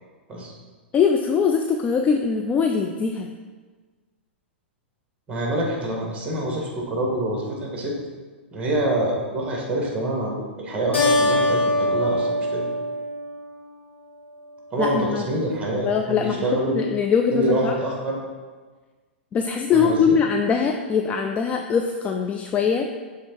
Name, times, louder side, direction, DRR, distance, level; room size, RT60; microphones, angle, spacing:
voice 1, 0.9-3.3 14.8-15.2 15.7-17.7 19.3-22.9, left 6 dB, 20° left, 3 dB, 0.4 m, -22 dB
voice 2, 5.3-7.9 8.5-12.6 14.7-16.7 17.3-18.2 19.7-20.1, right 1 dB, 20° right, -1 dB, 1.7 m, -26 dB
Keyboard (musical), 10.9-13.8, left 1 dB, 90° left, 1.4 m, -23 dB
6.8 x 3.4 x 4.6 m, 1.4 s
hypercardioid pair, 110°, 6 cm